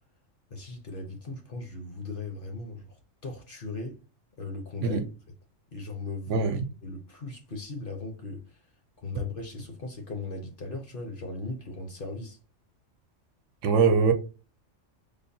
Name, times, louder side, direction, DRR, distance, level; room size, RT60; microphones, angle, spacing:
voice 1, 0.5-2.9 3.2-4.0 4.4-5.0 5.7-6.5 6.8-8.6 9.0-12.4, left 3 dB, 50° left, 0.9 m, -38 dB
voice 2, 6.3-6.6 13.6-14.1, right 5 dB, 70° right, 0.9 m, -22 dB
5.1 x 2.1 x 2.6 m
omnidirectional pair, 1.3 m